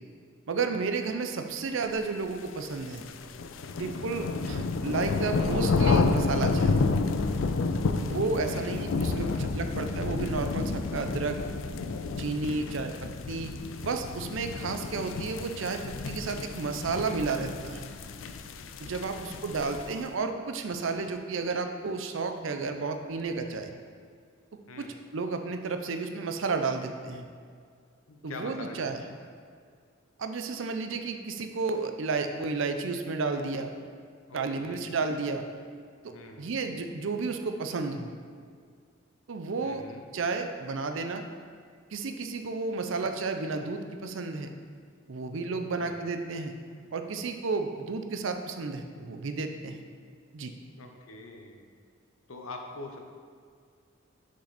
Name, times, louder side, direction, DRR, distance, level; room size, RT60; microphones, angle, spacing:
voice 1, 0.5-3.1 3.8-6.7 8.1-9.3 9.5-11.4 12.2-13.5 13.8-15.8 16.1-17.9 18.8-23.7 24.8-24.9 25.1-27.3 28.2-29.0 30.2-33.7 34.3-35.4 36.0-38.1 39.3-39.8 40.1-41.2 41.9-44.5 45.1-46.5 46.9-49.8 50.3-50.5, right 4 dB, 70° right, 6 dB, 0.5 m, -32 dB
sound 1, 2.5-20.0, left 4 dB, 70° left, 0.4 m, -30 dB
voice 2, 8.4-9.8 12.5-12.7 19.0-19.3 24.7-24.9 28.1-29.2 34.3-35.0 36.1-36.5 39.6-40.0 45.8-46.0 50.8-51.7 52.3-53.0, left 2 dB, 90° left, 3 dB, 0.8 m, -45 dB
6.6 x 5.3 x 4.1 m, 2.1 s
head